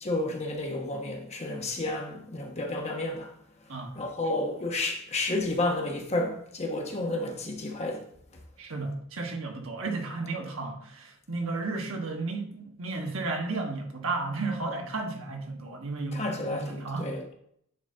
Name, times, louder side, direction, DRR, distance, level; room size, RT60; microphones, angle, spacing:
voice 1, 0.0-3.3 3.9-8.0 16.1-17.3, left 2 dB, 30° left, 1.1 m, -31 dB
voice 2, 8.6-17.1, right 3 dB, 70° right, 1.3 m, -33 dB
9.2 x 4.0 x 3.9 m
head